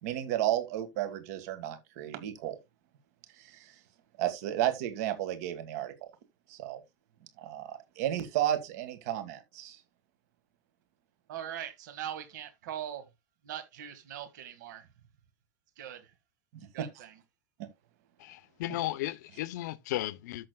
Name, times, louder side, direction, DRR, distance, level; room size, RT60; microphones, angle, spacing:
voice 1, 0.0-2.6 3.4-3.7 4.2-6.1 6.5-6.8 7.4-9.8 16.5-16.9, right 12 dB, 55° right, 1.7 m, -33 dB
voice 2, 11.3-13.0 13.4-14.9 15.8-16.1 16.7-17.1, right 10 dB, 75° right, 1.8 m, -41 dB
voice 3, 18.2-20.5, left 15 dB, 70° left, 0.7 m, -35 dB
13.5 x 6.4 x 2.3 m
supercardioid pair, 165°, 10 cm